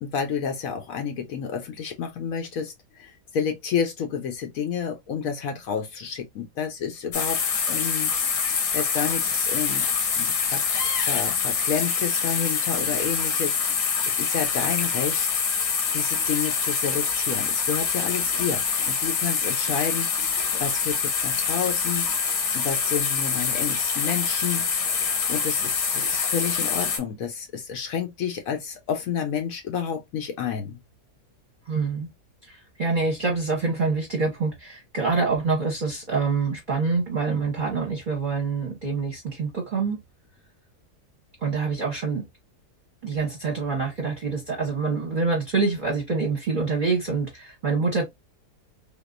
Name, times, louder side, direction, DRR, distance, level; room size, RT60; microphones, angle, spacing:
voice 1, 0.0-7.4 7.7-9.9 10.2-10.6 11.0-15.3 15.9-30.8, left 7 dB, 65° left, 1.0 m, -30 dB
sound 1, 7.1-27.0, left 6 dB, 85° left, 1.5 m, -25 dB
voice 2, 31.7-32.1 32.4-40.0 41.4-42.2 43.0-48.1, right 4 dB, 35° right, 0.9 m, -26 dB
3.5 x 2.7 x 2.5 m
omnidirectional pair, 1.7 m